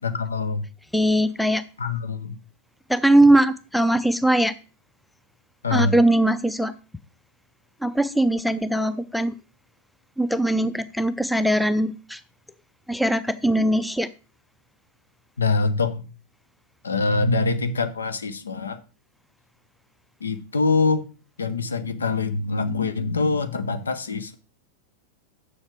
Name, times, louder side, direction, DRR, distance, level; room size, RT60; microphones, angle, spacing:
voice 1, 0.0-0.7 1.8-2.4 5.6-5.9 15.4-16.1 16.8-18.8 20.2-21.1 21.4-24.4, left 3 dB, 70° left, 0.7 m, -24 dB
voice 2, 0.9-1.6 2.9-4.5 5.7-6.7 7.8-9.3 10.2-12.2 12.9-14.1, right 1 dB, ahead, 0.5 m, -20 dB
7.2 x 6.5 x 5.0 m
figure-of-eight pair, 90°, 0 cm